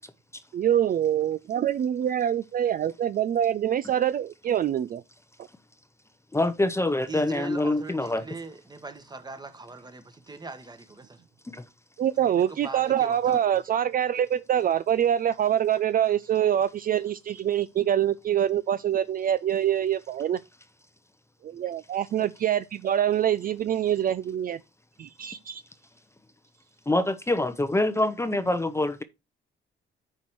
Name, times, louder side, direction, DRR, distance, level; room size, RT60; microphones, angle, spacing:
voice 1, 0.5-5.0 12.0-20.4 21.4-24.6 25.0-25.6, right 10 dB, 45° right, 0.4 m, -25 dB
voice 2, 6.3-8.2 11.5-11.6 26.9-29.0, left 2 dB, 15° left, 0.6 m, -25 dB
voice 3, 7.1-11.2 12.2-13.6, right 3 dB, 20° right, 1.3 m, -41 dB
9.5 x 4.5 x 4.5 m
cardioid pair, 90°, 20 cm